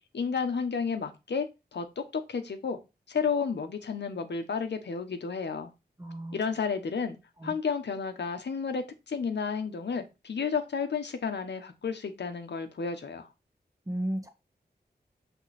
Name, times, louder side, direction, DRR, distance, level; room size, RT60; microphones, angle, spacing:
voice 1, 0.1-2.8 3.1-5.7 6.3-7.2 7.4-13.3, left 5 dB, 85° left, 7 dB, 1.0 m, -32 dB
voice 2, 6.0-6.4 7.4-7.6 13.9-14.3, right 1 dB, 20° right, 5 dB, 1.3 m, -33 dB
6.2 x 3.7 x 4.2 m, 0.26 s
wide cardioid pair, 55°, 18 cm